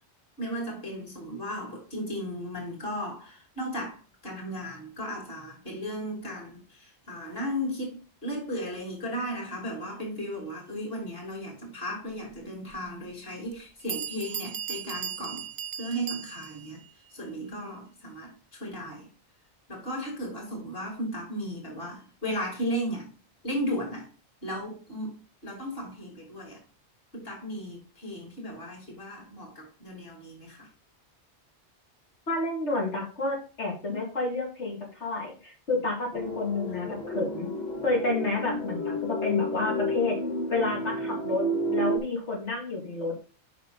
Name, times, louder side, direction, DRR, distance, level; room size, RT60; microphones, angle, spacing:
voice 1, 0.4-15.5 15.8-16.8 17.1-18.3 18.6-19.1 19.7-23.1 23.4-24.1 24.4-25.2 25.4-26.6 27.1-30.7, equal, 60° left, 3.2 m, -35 dB
Bell, 12.7-12.8 13.5-13.6 13.9-16.7, right 9 dB, 60° right, 0.6 m, -36 dB
voice 2, 32.3-37.5 37.8-40.2 40.5-43.1, left 3 dB, 90° left, 2.7 m, -30 dB
sound 1, 36.1-42.0, equal, 40° left, 1.5 m, -31 dB
7.4 x 5.7 x 4.0 m
omnidirectional pair, 1.2 m